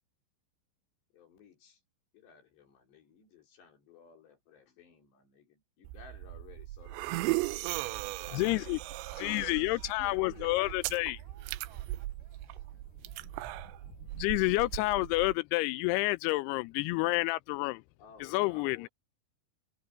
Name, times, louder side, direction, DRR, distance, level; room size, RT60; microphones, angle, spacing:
voice 1, 1.1-1.8 2.1-8.5 10.0-10.8 18.0-18.9, left 7 dB, 70° left, 5.9 m, -56 dB
sound 1, 5.8-15.3, right 19 dB, 85° right, 2.8 m, -38 dB
voice 2, 8.3-8.8 9.2-11.2 14.2-17.8 18.2-18.9, left 21 dB, 90° left, 2.3 m, -29 dB
voice 3, 9.2-14.0, right 5 dB, 45° right, 6.8 m, -65 dB
omnidirectional pair, 5.3 m